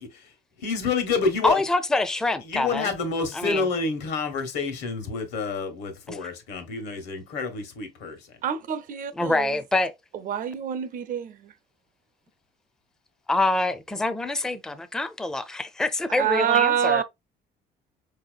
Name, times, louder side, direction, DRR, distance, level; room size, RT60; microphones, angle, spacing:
voice 1, 0.6-1.6 2.5-8.2, left 4 dB, 80° left, 1.2 m, -28 dB
voice 2, 1.4-3.0 3.3-3.7 6.1-6.2 9.2-9.9 13.3-17.0, left 2 dB, 5° left, 0.4 m, -25 dB
voice 3, 8.4-9.5 10.2-11.5 16.2-17.0, right 9 dB, 55° right, 0.5 m, -26 dB
4.5 x 2.8 x 2.4 m
cardioid pair, 110°, 17 cm